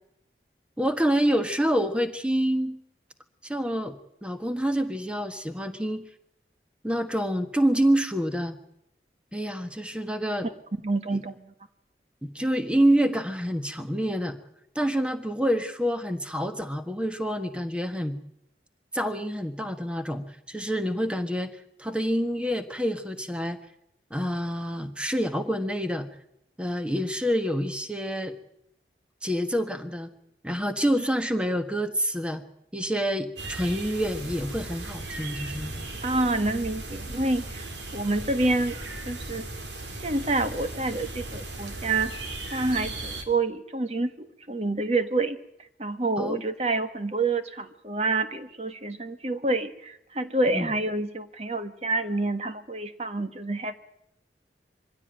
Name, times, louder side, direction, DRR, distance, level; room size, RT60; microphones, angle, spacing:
voice 1, 0.8-2.8 3.4-4.0 4.2-6.0 6.8-8.6 9.3-10.5 11.1-11.2 12.2-14.4 14.7-18.2 18.9-23.6 24.1-26.1 26.6-28.3 29.2-30.1 30.4-32.4 32.7-35.9 46.2-46.4 50.5-50.7, equal, 5° right, 8 dB, 1.4 m, -27 dB
voice 2, 10.8-11.5 36.0-38.8 39.1-39.5 40.0-45.4 45.8-53.7, right 2 dB, 35° right, 9 dB, 1.4 m, -28 dB
sound 1, 33.4-43.2, right 2 dB, 85° right, 3.3 m, -37 dB
23.0 x 16.0 x 8.9 m, 0.79 s
head